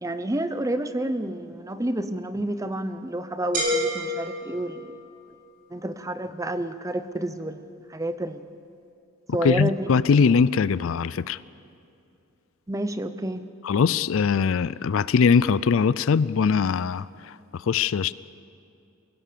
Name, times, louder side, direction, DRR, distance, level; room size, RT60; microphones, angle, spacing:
voice 1, 0.0-5.0 5.7-7.6 7.9-8.5 9.3-9.9 12.7-13.5, right 1 dB, 15° right, 11 dB, 0.7 m, -29 dB
sound 1, 3.5-5.4, equal, 40° right, 5.3 m, -29 dB
voice 2, 9.4-11.4 13.6-18.1, left 5 dB, 65° left, 18 dB, 0.4 m, -21 dB
23.0 x 16.5 x 6.8 m, 2.6 s
head